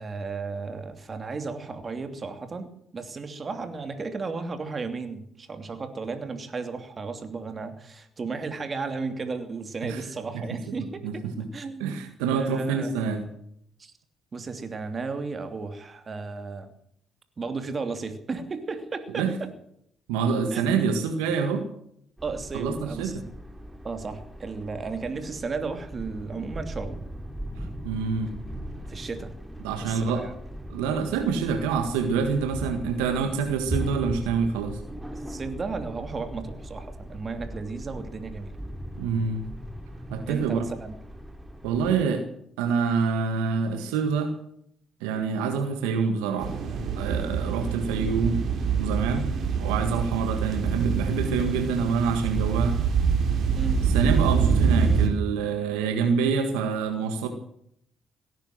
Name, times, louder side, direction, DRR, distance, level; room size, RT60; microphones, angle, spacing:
voice 1, 0.0-11.2 11.5-12.0 12.3-12.9 13.8-13.9 14.3-16.7 17.4-19.5 20.5-20.7 22.2-23.2 23.8-27.0 28.9-29.3 29.8-30.3 35.1-38.5 40.3-41.0 53.5-53.8, right 4 dB, 40° right, 8 dB, 2.9 m, -34 dB
voice 2, 10.3-10.8 11.0-11.5 11.8-13.2 19.1-19.4 20.1-21.7 22.5-23.2 27.6-28.3 29.6-30.3 30.7-34.8 39.0-39.5 40.1-40.6 41.6-42.3 42.6-44.3 45.0-46.5 47.0-48.4 48.8-49.3 49.6-52.8 53.8-57.3, right 5 dB, 85° right, 6 dB, 1.7 m, -26 dB
sound 1, 22.2-42.1, right 1 dB, 15° right, 3.2 m, -39 dB
sound 2, 46.4-55.1, right 6 dB, 60° right, 3.2 m, -25 dB
17.5 x 10.5 x 7.8 m, 0.69 s
hypercardioid pair, 50°, 0 cm